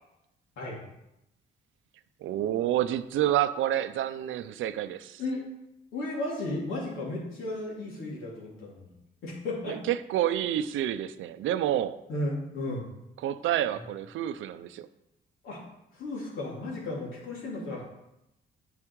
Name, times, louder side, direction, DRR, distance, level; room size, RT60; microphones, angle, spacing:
voice 1, 2.2-5.2 9.7-12.0 13.2-14.9, right 12 dB, 85° right, 12 dB, 0.5 m, -28 dB
voice 2, 5.9-9.0 9.2-9.8 12.1-12.8 13.7-13.8 15.4-15.6 15.9-17.8, left 2 dB, 90° left, -4 dB, 2.9 m, -34 dB
9.8 x 4.7 x 4.7 m, 0.88 s
cardioid pair, 100°, 20 cm